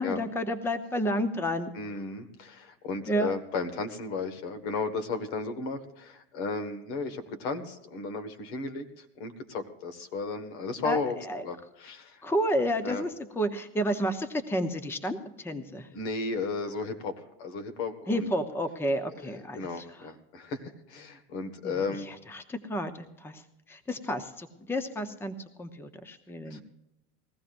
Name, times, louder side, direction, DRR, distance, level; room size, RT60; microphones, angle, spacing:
voice 1, 0.0-1.7 3.1-3.3 10.8-11.4 12.2-15.9 18.1-19.8 21.6-23.4 23.7-26.6, equal, 5° left, 9 dB, 0.8 m, -31 dB
voice 2, 1.7-11.2 11.4-12.2 12.8-13.1 15.9-18.3 19.2-19.3 19.5-22.1 26.5-26.6, left 4 dB, 70° left, 8 dB, 1.8 m, -34 dB
20.5 x 15.5 x 2.6 m, 0.88 s
supercardioid pair, 125°, 33 cm